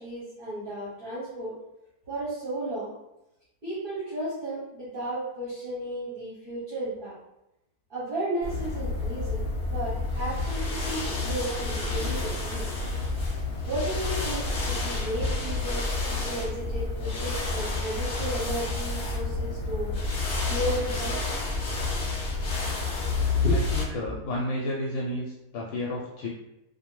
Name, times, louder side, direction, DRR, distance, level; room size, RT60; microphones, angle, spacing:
voice 1, 0.0-1.5 2.1-2.9 3.6-7.2 7.9-12.7 13.6-19.9 20.5-21.4 23.4-23.6 23.9-24.2, right 1 dB, 45° right, -9 dB, 0.7 m, -33 dB
sound 1, 8.4-23.8, left 3 dB, 55° left, 0.6 m, -29 dB
voice 2, 23.5-26.3, left 1 dB, 75° left, -3 dB, 0.9 m, -32 dB
2.6 x 2.1 x 3.0 m, 0.89 s
omnidirectional pair, 1.6 m